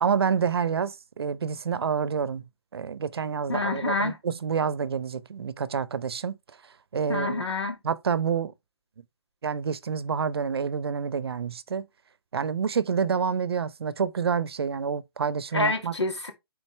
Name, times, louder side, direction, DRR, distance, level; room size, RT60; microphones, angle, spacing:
voice 1, 0.0-2.4 2.7-6.4 6.9-7.4 7.8-8.5 9.4-11.9 12.3-15.9, right 6 dB, 65° right, 0.7 m, -28 dB
voice 2, 3.5-4.2 7.1-7.8 15.5-16.3, left 2 dB, 85° left, 2.1 m, -27 dB
9.6 x 4.0 x 3.2 m
figure-of-eight pair, 135°, 14 cm